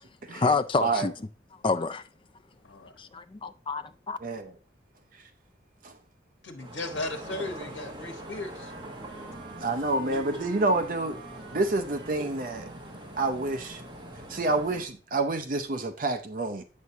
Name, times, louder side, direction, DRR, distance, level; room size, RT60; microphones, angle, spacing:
voice 1, 0.3-1.1 1.6-2.0 3.0-4.2, left 4 dB, 25° left, 0.3 m, -28 dB
voice 2, 4.2-4.5 5.8-5.9 9.6-11.2 11.5-12.7 13.2-13.8 14.3-16.6, right 2 dB, 45° right, 0.6 m, -28 dB
voice 3, 6.4-8.7, left 2 dB, 80° left, 1.3 m, -36 dB
sound 1, 6.6-14.9, right 1 dB, 25° right, 1.2 m, -43 dB
Wind instrument woodwind instrument, 8.0-13.4, right 3 dB, 85° right, 1.1 m, -47 dB
8.1 x 6.3 x 2.7 m
head